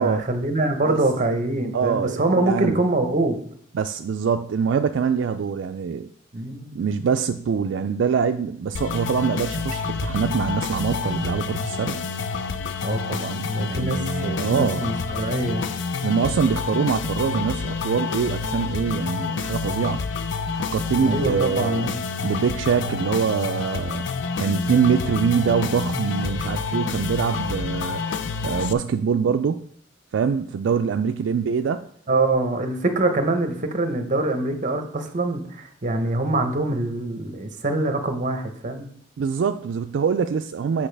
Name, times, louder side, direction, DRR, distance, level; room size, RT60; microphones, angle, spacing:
voice 1, 0.0-3.4 6.3-6.8 12.8-15.6 21.0-21.9 32.1-38.9, right 2 dB, 40° right, 7 dB, 0.9 m, -24 dB
voice 2, 1.7-2.8 3.7-6.1 6.7-12.0 13.6-14.9 16.0-20.0 20.5-21.9 22.2-24.0 24.4-28.0 28.4-29.7 30.1-31.9 39.2-40.9, right 6 dB, 75° right, 8 dB, 0.3 m, -24 dB
sound 1, 8.7-28.7, left 4 dB, 70° left, 0.5 m, -28 dB
8.6 x 5.4 x 3.3 m, 0.63 s
head